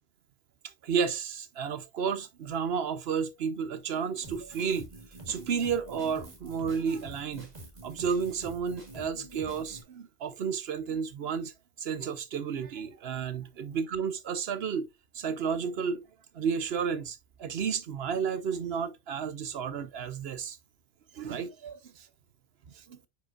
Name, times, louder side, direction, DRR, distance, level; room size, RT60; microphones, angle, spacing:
voice 1, 0.8-4.9 5.3-7.5 7.8-11.5 11.8-14.9 15.1-16.0 16.3-20.6 21.1-22.1 22.9-23.1, right 6 dB, 65° right, 1.0 m, -32 dB
Drum kit, 4.2-9.8, right 1 dB, 35° right, 1.8 m, -46 dB
8.9 x 5.2 x 2.4 m
omnidirectional pair, 1.2 m